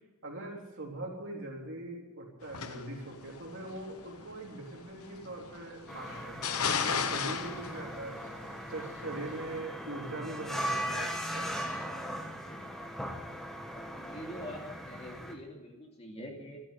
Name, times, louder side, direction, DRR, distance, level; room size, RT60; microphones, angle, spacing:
voice 1, 0.2-8.2 8.7-11.5 16.4-16.5, right 2 dB, 55° right, -1 dB, 3.8 m, -42 dB
sound 1, 2.4-9.6, left 6 dB, 85° left, 1.1 m, -36 dB
sound 2, 3.5-13.1, equal, 25° right, 3.2 m, -58 dB
sound 3, 5.9-15.3, equal, ahead, 1.4 m, -39 dB
voice 2, 13.7-16.6, equal, 25° left, 0 dB, 2.6 m, -44 dB
13.0 x 13.0 x 8.3 m, 1.1 s
head